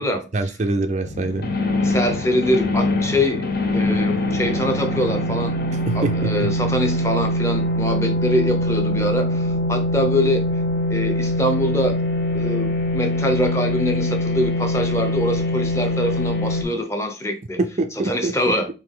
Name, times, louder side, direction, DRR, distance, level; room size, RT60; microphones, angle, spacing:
voice 1, 0.3-1.5 5.9-6.5 17.8-18.5, right 2 dB, 35° right, 0.4 m, -24 dB
sound 1, 1.1-16.6, left 1 dB, 50° left, 0.8 m, -23 dB
voice 2, 1.8-5.6 5.9-10.5 10.9-12.0 12.3-17.6 18.0-18.7, left 1 dB, 15° left, 0.7 m, -24 dB
4.7 x 3.1 x 3.7 m
head